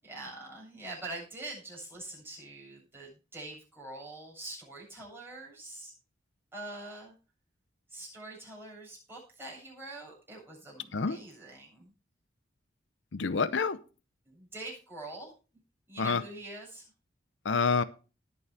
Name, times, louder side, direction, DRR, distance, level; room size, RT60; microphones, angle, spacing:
voice 1, 0.0-5.9 6.5-7.1 7.9-11.9 14.3-15.3 15.9-16.8, right 2 dB, 15° right, -5 dB, 7.8 m, -44 dB
voice 2, 13.1-13.8 16.0-16.2 17.5-17.8, left 5 dB, 75° left, 15 dB, 0.7 m, -27 dB
19.5 x 7.0 x 3.5 m, 0.33 s
head